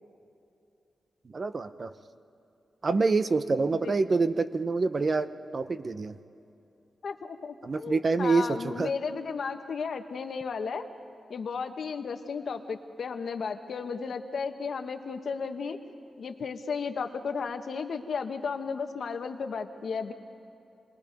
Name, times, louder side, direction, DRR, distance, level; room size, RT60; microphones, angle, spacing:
voice 1, 1.3-1.9 2.8-5.3 5.5-6.1 7.6-8.9, right 3 dB, 35° right, 11 dB, 0.6 m, -26 dB
voice 2, 7.0-10.8 11.3-15.8 16.2-20.1, left 5 dB, 60° left, 6 dB, 1.2 m, -34 dB
28.0 x 20.5 x 5.2 m, 2.7 s
wide cardioid pair, 150°, 0 cm